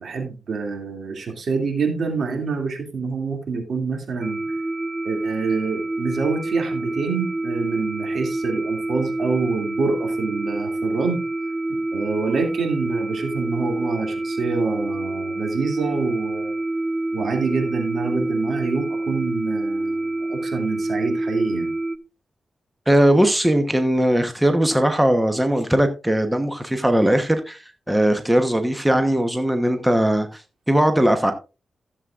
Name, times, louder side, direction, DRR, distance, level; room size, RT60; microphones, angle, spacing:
voice 1, 0.0-4.5 5.0-11.2 11.9-16.5 17.1-21.7, right 4 dB, 70° right, 2.6 m, -26 dB
sound 1, 4.2-22.0, right 2 dB, 30° right, 0.6 m, -27 dB
voice 2, 22.9-31.3, right 1 dB, 10° right, 1.0 m, -19 dB
14.5 x 7.4 x 2.5 m
cardioid pair, 80°, 0 cm